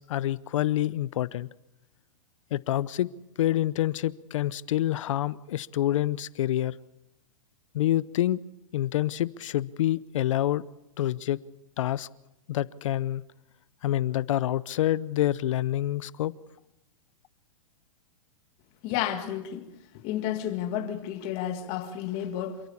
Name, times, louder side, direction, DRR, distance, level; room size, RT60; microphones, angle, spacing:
voice 1, 0.0-1.5 2.5-3.1 3.4-6.7 7.7-8.4 8.7-10.6 11.0-11.4 11.8-12.1 12.5-13.2 13.8-16.3, left 13 dB, 65° left, 0.7 m, -27 dB
voice 2, 18.8-19.7 20.0-22.6, left 11 dB, 35° left, 2.0 m, -31 dB
27.5 x 14.5 x 7.1 m
hypercardioid pair, 140°, 17 cm